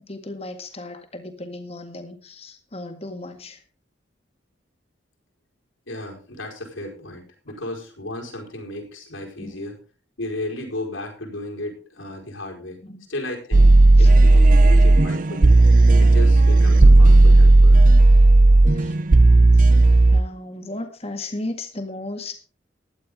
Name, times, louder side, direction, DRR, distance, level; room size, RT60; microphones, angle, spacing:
voice 1, 0.1-3.6 9.4-9.6 12.8-13.0 14.0-14.1 18.7-19.0 19.5-19.7 20.1-22.4, left 2 dB, 30° left, 6 dB, 1.9 m, -35 dB
voice 2, 5.9-9.8 10.2-12.8 13.1-15.6 16.0-17.8, left 1 dB, 90° left, 1 dB, 4.8 m, -34 dB
sound 1, 13.5-20.2, right 2 dB, 40° right, 0.5 m, -12 dB
16.0 x 11.5 x 3.7 m, 0.37 s
head